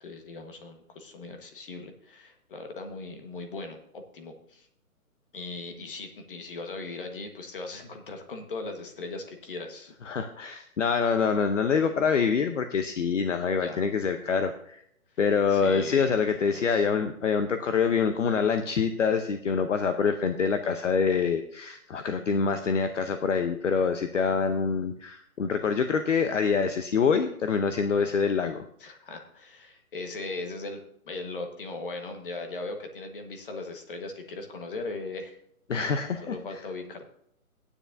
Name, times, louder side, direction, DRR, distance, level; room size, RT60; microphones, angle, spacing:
voice 1, 0.0-4.7 5.3-9.9 13.5-13.8 15.5-16.2 16.5-16.9 28.8-35.4 35.7-37.1, left 3 dB, 35° left, 4 dB, 1.4 m, -39 dB
voice 2, 10.1-14.8 15.2-28.6 35.7-36.4, left 5 dB, 55° left, 8 dB, 0.8 m, -25 dB
14.5 x 9.9 x 2.6 m, 0.69 s
hypercardioid pair, 170°, 44 cm